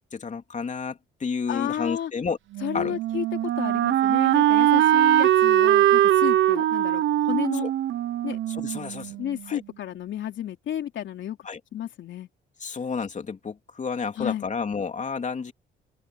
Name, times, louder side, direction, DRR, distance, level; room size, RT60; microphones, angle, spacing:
voice 1, 0.0-2.4 2.7-3.0 6.6-6.7 7.6-7.7 8.5-9.2 9.5-9.6 11.4-11.6 12.6-15.5, left 5 dB, 40° left, 3.1 m, -31 dB
voice 2, 1.5-2.1 2.6-7.7 8.2-8.4 9.2-11.4 11.7-12.3 14.1-14.5, left 10 dB, 70° left, 3.2 m, -32 dB
Wind instrument woodwind instrument, 2.5-9.4, right 12 dB, 75° right, 0.9 m, -21 dB
open air
cardioid pair, 90°, 20 cm